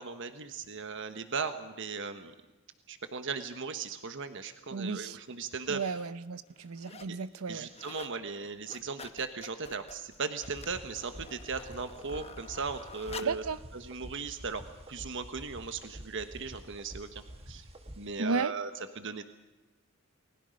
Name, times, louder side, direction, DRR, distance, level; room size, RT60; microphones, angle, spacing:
voice 1, 0.0-2.3 2.9-5.8 7.1-7.2 7.5-13.4 13.7-14.6 14.9-17.7 18.0-18.7 19.0-19.2, right 5 dB, 60° right, 8 dB, 1.2 m, -37 dB
voice 2, 4.7-5.2 5.7-7.7 13.2-13.6 18.2-18.5, right 4 dB, 80° right, 14 dB, 0.7 m, -33 dB
sound 1, 4.9-5.0 5.7-6.1 6.5-7.2 7.5-8.2 8.5-13.5 14.1-14.2, left 5 dB, 30° left, 1.0 m, -49 dB
sound 2, 10.4-18.1, equal, 30° right, 1.8 m, -48 dB
29.5 x 20.5 x 5.2 m, 1.1 s
head